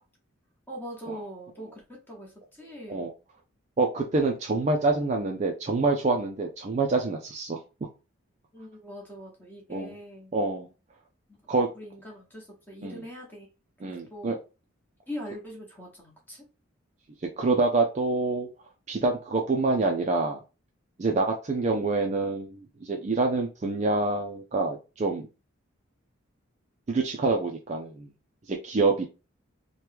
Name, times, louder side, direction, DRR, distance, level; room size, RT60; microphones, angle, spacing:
voice 1, 0.7-3.1 8.5-10.3 11.3-11.4 11.7-13.5 13.8-14.4 15.1-16.5, equal, 10° left, -2 dB, 1.0 m, -42 dB
voice 2, 3.8-7.6 9.7-9.9 10.3-10.7 11.5-11.7 12.8-13.0 13.8-14.4 17.4-18.5 18.9-20.4 21.0-25.2 26.9-28.1 28.5-29.0, right 3 dB, 35° right, 2 dB, 0.4 m, -26 dB
3.0 x 2.2 x 3.3 m, 0.30 s
head